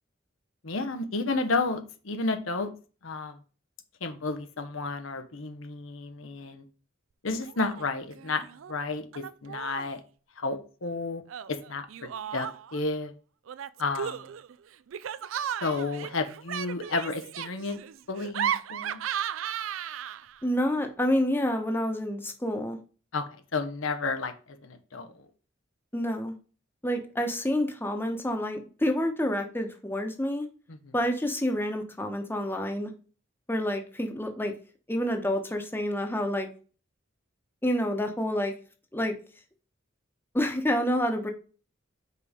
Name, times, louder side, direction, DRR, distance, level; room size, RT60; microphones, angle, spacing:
voice 1, 0.6-2.7 3.0-3.4 4.0-6.6 7.2-10.0 10.4-11.2 11.5-13.1 13.8-14.4 15.6-17.8 18.1-19.0 23.1-23.2 23.5-25.3 30.7-30.9, left 3 dB, 85° left, 8 dB, 0.9 m, -32 dB
Laughter, 7.4-7.8 8.1-8.7 9.1-10.0 11.3-12.8 13.5-20.4, right 9 dB, 80° right, 0.4 m, -35 dB
voice 2, 20.4-22.8 25.9-26.3 26.8-30.5 30.9-32.9 33.5-34.5 34.9-36.5 37.6-38.5 38.9-39.2 40.3-41.3, equal, 10° left, 4 dB, 1.0 m, -28 dB
5.4 x 4.1 x 4.9 m, 0.36 s
head